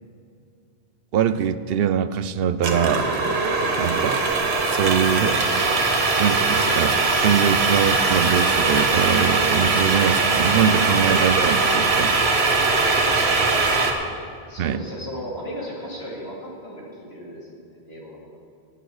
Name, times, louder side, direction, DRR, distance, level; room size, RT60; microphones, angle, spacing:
voice 1, 1.1-3.1 3.8-4.2 4.7-5.4 6.2-12.2 14.6-14.8, right 8 dB, 70° right, 14 dB, 0.8 m, -23 dB
sound 1, 2.6-13.9, right 3 dB, 90° right, 1.4 m, -21 dB
voice 2, 13.1-13.8 14.4-18.2, equal, 75° left, -4 dB, 3.2 m, -36 dB
18.0 x 8.7 x 4.9 m, 2.3 s
omnidirectional pair, 1.0 m